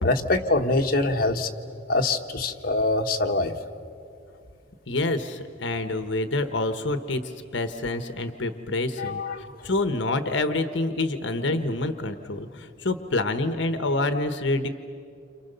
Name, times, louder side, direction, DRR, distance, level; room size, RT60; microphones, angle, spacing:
voice 1, 0.0-1.5 1.9-3.5 9.0-9.5, left 2 dB, 50° left, 3 dB, 1.4 m, -24 dB
voice 2, 4.9-9.2 9.6-14.7, left 2 dB, 65° left, 9 dB, 1.2 m, -27 dB
29.5 x 27.5 x 6.8 m, 2.4 s
head